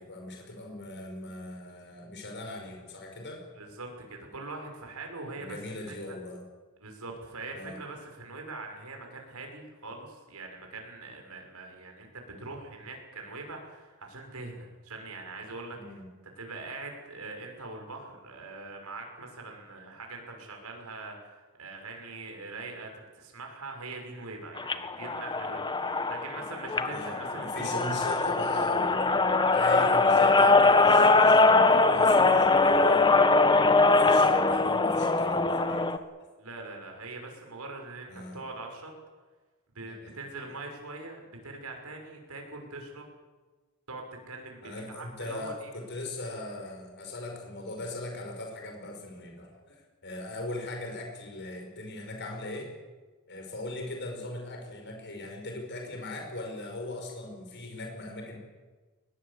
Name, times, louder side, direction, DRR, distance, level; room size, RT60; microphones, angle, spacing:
voice 1, 0.0-3.4 5.4-6.4 7.5-7.8 15.7-16.1 26.9-29.0 29.3-33.2 33.8-35.9 38.1-38.4 39.9-40.1 44.6-52.7 53.3-58.4, left 2 dB, 55° left, 3 dB, 5.7 m, -39 dB
voice 2, 3.6-5.6 6.1-6.2 6.8-28.0 36.4-38.9 39.7-43.1 43.9-45.7 50.1-50.2, right 3 dB, 90° right, 2 dB, 6.1 m, -42 dB
sound 1, 24.6-36.0, left 3 dB, 20° left, 1.2 m, -22 dB
22.5 x 20.5 x 8.5 m, 1.3 s
head